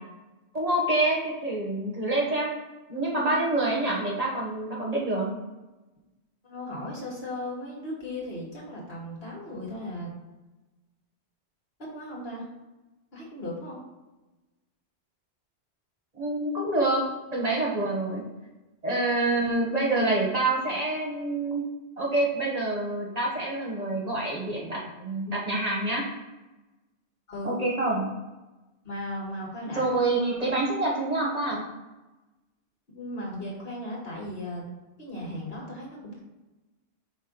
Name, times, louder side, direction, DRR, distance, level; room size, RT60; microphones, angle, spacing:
voice 1, 0.5-2.5 2.9-5.3 16.1-17.0 17.3-18.2 18.8-21.6 22.0-26.0 27.4-28.0 29.7-31.6, right 2 dB, 35° right, -4 dB, 1.4 m, -27 dB
voice 2, 6.4-10.1 11.8-12.5 13.1-13.8 27.3-27.6 28.8-30.5 32.9-34.7 35.0-36.2, left 1 dB, 65° left, -4 dB, 2.2 m, -37 dB
5.5 x 3.6 x 5.2 m, 1.1 s
omnidirectional pair, 1.1 m